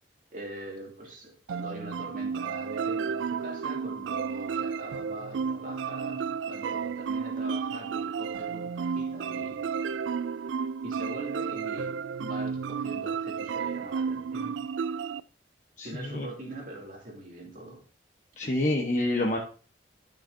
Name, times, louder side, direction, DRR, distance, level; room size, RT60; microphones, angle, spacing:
voice 1, 0.3-9.7 10.8-15.0 15.8-17.8, equal, 45° right, 2.8 m, -42 dB
sound 1, 1.5-15.2, right 6 dB, 85° right, 0.3 m, -32 dB
voice 2, 15.8-16.3 18.4-19.4, left 1 dB, 40° left, 1.2 m, -27 dB
13.5 x 6.5 x 2.8 m
head